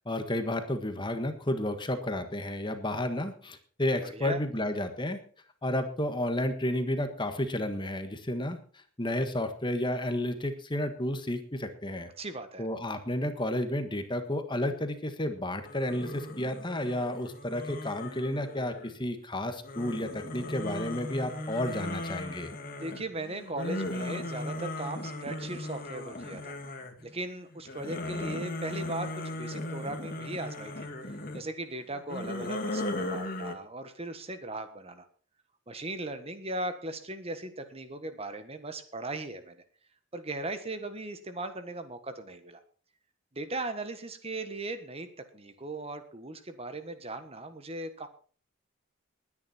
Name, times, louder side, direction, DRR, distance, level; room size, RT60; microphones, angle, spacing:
voice 1, 0.0-5.2 5.6-12.1 12.6-22.6, left 1 dB, 25° left, 8 dB, 1.6 m, -32 dB
voice 2, 4.0-4.4 12.2-12.7 22.8-26.5 27.0-35.1 35.7-39.6 40.1-42.6 43.3-45.1 45.3-48.1, right 2 dB, 30° right, 9 dB, 1.5 m, -38 dB
sound 1, 15.6-19.0 19.6-27.1 27.5-31.4 32.0-33.6, left 1 dB, 45° left, 2.0 m, -37 dB
20.5 x 10.0 x 4.4 m, 0.42 s
head